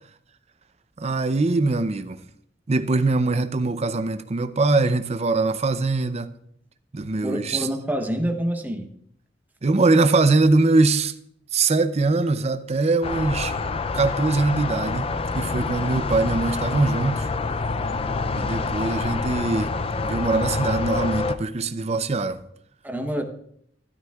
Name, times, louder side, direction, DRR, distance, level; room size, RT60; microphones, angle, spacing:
voice 1, 1.0-2.2 2.7-6.3 6.9-7.7 9.6-11.1 11.5-13.5 13.9-17.3 18.4-19.7 20.0-22.4, right 3 dB, 35° right, 0.6 m, -22 dB
voice 2, 7.2-8.9 22.8-23.2, equal, 10° right, 0.9 m, -27 dB
sound 1, 13.0-21.4, left 3 dB, 30° left, 0.4 m, -27 dB
12.5 x 12.0 x 2.4 m
head